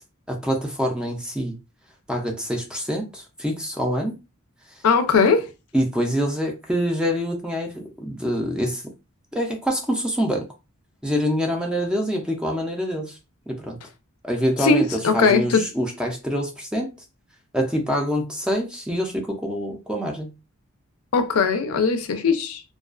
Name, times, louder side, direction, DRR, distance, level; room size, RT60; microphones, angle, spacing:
voice 1, 0.3-1.5 2.1-4.2 5.7-8.8 9.3-10.5 11.0-13.2 13.5-13.8 14.2-16.9 17.5-20.3, equal, 5° right, 0.4 m, -25 dB
voice 2, 4.8-5.5 14.6-15.6 21.1-22.6, left 5 dB, 75° left, 0.4 m, -19 dB
2.3 x 2.2 x 2.3 m
head